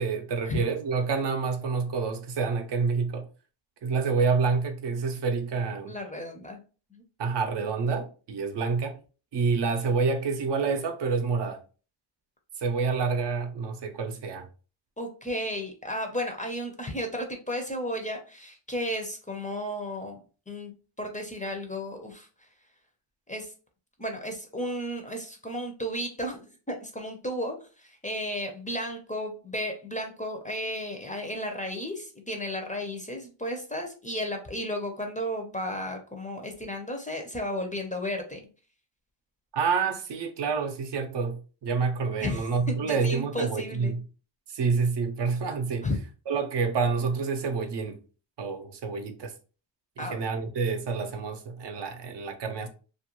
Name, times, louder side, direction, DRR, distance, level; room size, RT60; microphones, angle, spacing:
voice 1, 0.0-3.3 3.8-6.0 7.2-9.0 9.3-11.6 12.6-14.5 39.5-44.0 44.5-45.9 46.3-48.0 48.4-49.3 50.0-52.7, right 5 dB, 60° right, 0.6 m, -28 dB
voice 2, 5.8-6.6 6.9-7.0 15.0-22.5 23.3-23.5 24.0-38.4 42.2-44.0 45.8-46.0 50.0-50.2, equal, 15° left, 0.5 m, -33 dB
2.4 x 2.2 x 2.9 m
cardioid pair, 90°, 48 cm